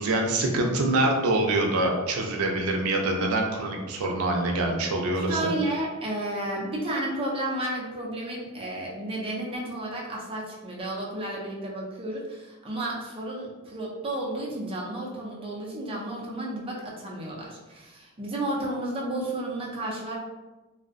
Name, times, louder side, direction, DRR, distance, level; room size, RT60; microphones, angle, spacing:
voice 1, 0.0-5.5, right 2 dB, 90° right, 1 dB, 0.4 m, -25 dB
voice 2, 5.1-20.2, right 1 dB, 25° right, -4 dB, 0.4 m, -32 dB
2.5 x 2.0 x 2.4 m, 1.2 s
head